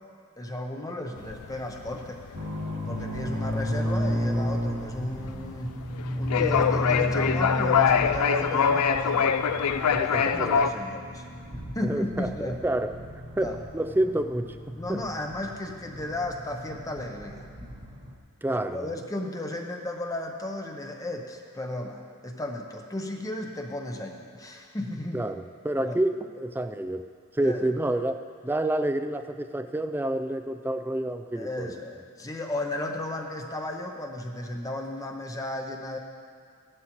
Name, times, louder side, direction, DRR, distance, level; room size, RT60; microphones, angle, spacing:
voice 1, 0.4-2.3 2.9-5.8 6.2-9.3 10.1-11.2 11.7-12.6 13.4-13.6 14.8-17.5 18.5-25.2 25.8-26.0 27.4-27.7 31.3-36.0, left 1 dB, 15° left, 2 dB, 0.7 m, -34 dB
sound 1, 1.2-10.7, left 7 dB, 85° left, 0.5 m, -25 dB
sound 2, 2.3-18.2, equal, 50° right, 1.5 m, -33 dB
voice 2, 9.9-10.7 11.8-15.0 18.4-18.9 25.1-27.0 27.3-31.8, right 1 dB, 10° right, 9 dB, 0.3 m, -29 dB
15.5 x 11.0 x 3.0 m, 2.2 s
head